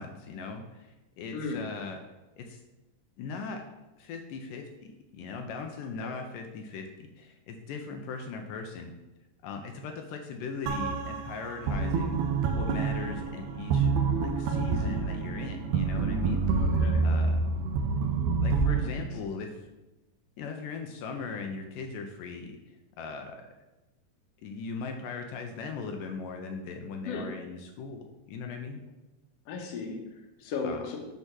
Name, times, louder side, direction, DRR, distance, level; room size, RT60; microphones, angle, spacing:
voice 1, 0.0-2.0 2.4-2.6 3.2-3.6 4.0-4.7 5.1-6.9 7.2-8.9 9.4-13.9 14.2-16.6 17.0-17.6 18.4-19.6 20.4-23.4 24.4-28.8 30.6-30.9, left 4 dB, 85° left, 4 dB, 2.2 m, -39 dB
sound 1, 10.7-18.8, right 4 dB, 75° right, 1.8 m, -27 dB
voice 2, 16.5-17.0 18.8-18.9 27.1-27.3 29.5-31.0, left 4 dB, 60° left, 1 dB, 1.8 m, -36 dB
8.0 x 3.5 x 6.1 m, 1.0 s
omnidirectional pair, 4.0 m